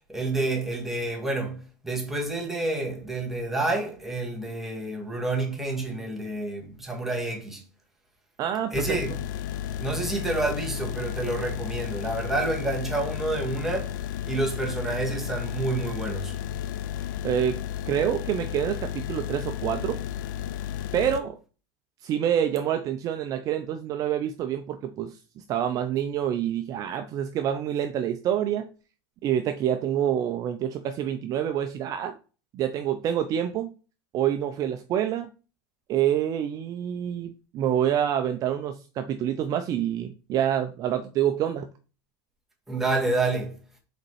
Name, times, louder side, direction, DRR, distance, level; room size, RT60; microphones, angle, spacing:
voice 1, 0.1-7.6 8.7-9.2 9.8-14.0 14.3-16.3 42.7-43.6, right 2 dB, 5° right, 1.7 m, -29 dB
voice 2, 8.4-9.0 17.2-17.6 17.9-20.0 20.9-21.4 22.0-28.7 29.2-32.2 32.5-33.7 34.1-35.3 35.9-41.7, right 10 dB, 35° right, 0.5 m, -27 dB
sound 1, 8.7-21.2, left 10 dB, 80° left, 0.5 m, -33 dB
5.2 x 4.1 x 4.7 m
supercardioid pair, 140°, 10 cm